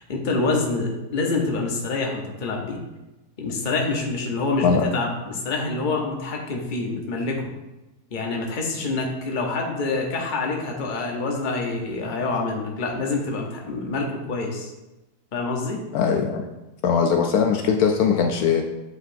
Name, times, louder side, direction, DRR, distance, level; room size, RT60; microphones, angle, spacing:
voice 1, 0.0-2.8 3.4-7.5 8.1-14.7 15.3-15.8, left 3 dB, 35° left, 0 dB, 0.9 m, -26 dB
voice 2, 15.9-16.5 16.8-18.6, left 6 dB, 75° left, 3 dB, 1.0 m, -20 dB
8.3 x 4.8 x 2.6 m, 1.0 s
omnidirectional pair, 1.7 m